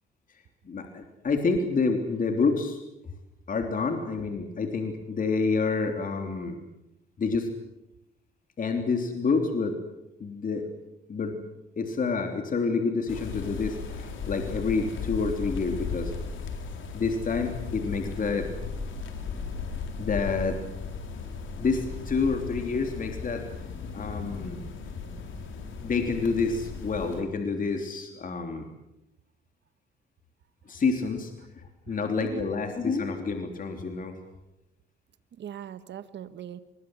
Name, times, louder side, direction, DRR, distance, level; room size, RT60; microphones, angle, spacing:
voice 1, 0.3-2.8 3.5-6.6 7.2-7.5 8.6-9.8 10.2-10.7 11.1-11.4 11.8-16.1 16.9-18.5 20.0-20.6 21.6-23.4 23.9-24.6 25.8-28.6 30.7-34.2, left 4 dB, 45° left, 4 dB, 3.2 m, -28 dB
sound 1, 13.1-27.2, left 4 dB, 75° left, 4.1 m, -36 dB
voice 2, 31.9-32.5 35.4-36.6, right 9 dB, 65° right, 13 dB, 1.4 m, -40 dB
24.0 x 21.5 x 8.0 m, 0.92 s
cardioid pair, 90°, 20 cm